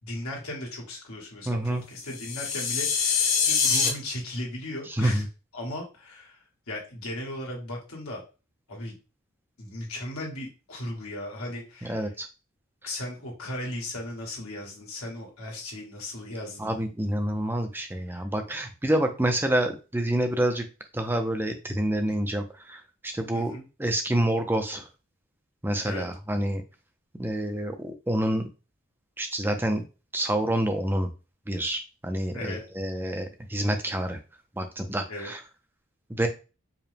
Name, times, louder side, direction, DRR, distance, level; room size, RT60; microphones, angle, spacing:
voice 1, 0.0-5.3 5.5-6.4 6.7-8.2 8.7-8.9 9.6-12.1 12.8-16.8 18.1-18.2 22.1-22.2 23.3-23.6 25.8-26.1 32.3-32.6 35.1-35.3, left 1 dB, 90° left, -2 dB, 1.7 m, -36 dB
voice 2, 1.5-1.8 5.0-5.2 11.9-12.3 16.6-20.6 20.9-22.4 22.7-22.8 23.0-24.8 25.6-26.6 27.2-28.5 29.2-29.8 30.1-31.1 31.5-34.2 34.6-35.4 36.2-36.3, right 1 dB, 10° right, 6 dB, 0.5 m, -27 dB
sound 1, 2.1-3.9, left 6 dB, 35° left, 0.7 m, -24 dB
4.7 x 2.2 x 3.4 m, 0.31 s
head